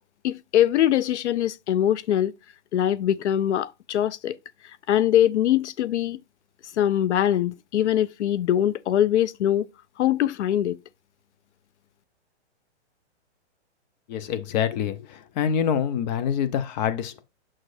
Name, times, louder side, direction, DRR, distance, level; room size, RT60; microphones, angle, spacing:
voice 1, 0.2-2.3 2.7-4.4 4.9-6.2 6.8-9.7 10.0-10.8, left 11 dB, 75° left, 0.5 m, -22 dB
voice 2, 14.1-17.2, left 8 dB, 40° left, 0.9 m, -26 dB
6.4 x 6.3 x 2.6 m
hypercardioid pair, 140°, 35 cm